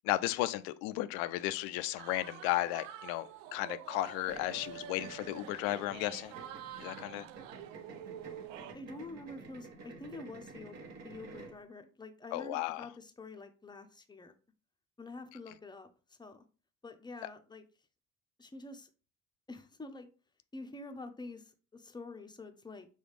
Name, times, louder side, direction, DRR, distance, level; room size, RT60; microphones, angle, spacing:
voice 1, 0.0-6.3 6.8-7.3 12.3-12.9, left 16 dB, 70° left, 0.5 m, -34 dB
sound 1, 2.0-8.7, right 10 dB, 75° right, 0.5 m, -47 dB
sound 2, 4.3-11.6, right 3 dB, 45° right, 1.2 m, -51 dB
voice 2, 8.7-10.8 11.0-14.3 15.0-16.4 16.8-17.6 18.4-18.9 19.5-20.1 20.5-22.9, left 2 dB, 10° left, 0.7 m, -47 dB
6.2 x 2.4 x 3.3 m
hypercardioid pair, 55°, 38 cm